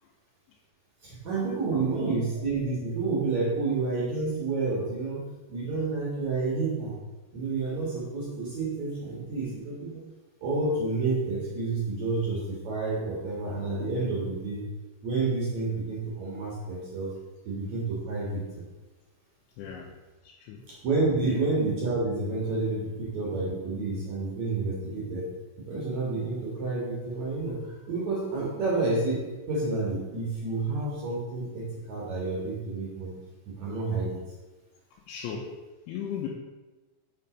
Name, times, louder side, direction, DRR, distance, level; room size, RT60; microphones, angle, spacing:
voice 1, 1.0-5.2 5.5-7.0 7.3-10.0 10.4-14.6 15.0-17.1 17.4-18.4 20.7-25.3 25.7-29.2 29.5-33.1 33.5-34.2, right 3 dB, 55° right, -4 dB, 2.1 m, -29 dB
voice 2, 1.7-2.2 19.6-19.9 20.2-20.6 21.2-21.4 35.1-35.5 35.9-36.3, left 8 dB, 80° left, -2 dB, 3.1 m, -37 dB
6.8 x 5.9 x 5.1 m, 1.2 s
omnidirectional pair, 5.6 m